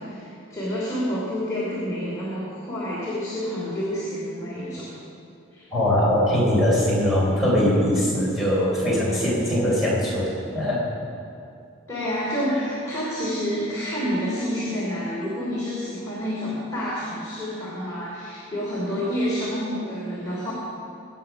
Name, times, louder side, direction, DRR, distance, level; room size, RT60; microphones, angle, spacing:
voice 1, 0.0-4.9 5.5-5.7 11.9-20.5, equal, 15° left, -8 dB, 3.1 m, -28 dB
voice 2, 5.7-10.8, equal, ahead, -7 dB, 3.9 m, -21 dB
21.0 x 9.2 x 5.8 m, 2.5 s
head